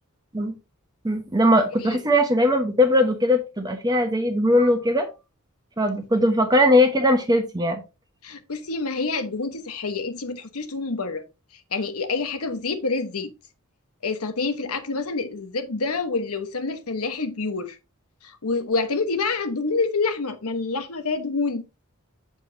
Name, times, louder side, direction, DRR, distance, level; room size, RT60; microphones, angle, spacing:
voice 1, 1.0-5.1 5.8-7.8, left 1 dB, 20° right, 0.9 m, -20 dB
voice 2, 8.2-11.2 11.7-13.3 14.0-17.8 18.2-21.6, left 4 dB, 90° left, 1.1 m, -27 dB
7.4 x 6.9 x 2.7 m
head